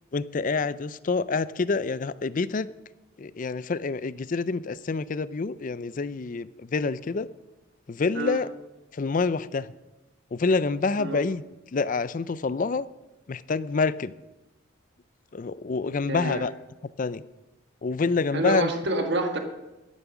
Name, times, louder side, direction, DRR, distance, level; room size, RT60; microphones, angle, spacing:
voice 1, 0.1-2.7 3.2-7.3 7.9-8.5 8.9-9.7 10.3-11.4 11.7-12.9 13.3-14.1 15.3-16.5 17.0-17.2 17.8-18.7, left 4 dB, 40° left, 17 dB, 0.4 m, -27 dB
voice 2, 16.1-16.4 18.3-19.4, right 2 dB, 55° right, 5 dB, 1.5 m, -27 dB
12.5 x 9.4 x 6.0 m, 1.0 s
head